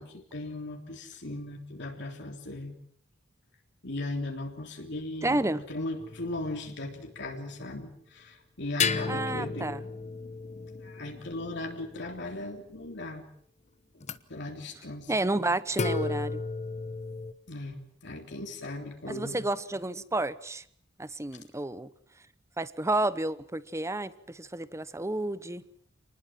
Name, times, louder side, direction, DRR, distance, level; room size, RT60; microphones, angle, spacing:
voice 1, 0.0-2.8 3.8-5.4 5.7-9.8 10.8-13.2 14.3-15.1 17.5-19.5, left 2 dB, 65° left, 2 dB, 3.5 m, -38 dB
voice 2, 5.2-5.6 9.1-9.8 15.1-16.4 19.1-20.6 21.0-21.9 22.6-25.6, right 2 dB, 15° right, 16 dB, 1.0 m, -30 dB
sound 1, 6.0-7.2 8.8-12.5 14.0-14.2 15.7-17.3, left 4 dB, 35° left, 1.1 m, -34 dB
28.0 x 20.5 x 7.5 m, 0.62 s
head